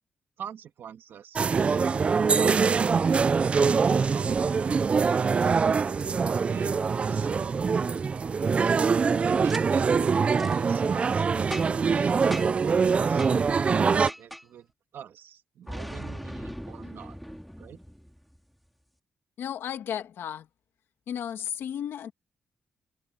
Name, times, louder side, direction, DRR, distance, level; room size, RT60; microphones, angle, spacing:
voice 1, 0.4-5.9 6.5-7.6 9.2-14.7 14.9-17.2 17.6-17.8, right 9 dB, 70° right, 1.9 m, -44 dB
sound 1, 1.3-14.1, right 5 dB, 30° right, 0.3 m, -24 dB
Boom, 9.4-9.6 10.3-10.6 11.5-11.9 12.3-12.7 13.2-13.4 14.1-14.5 15.7-18.4, equal, ahead, 2.1 m, -39 dB
voice 2, 19.4-20.5 21.1-22.1, left 9 dB, 80° left, 1.7 m, -34 dB
wide cardioid pair, 150°, 4 cm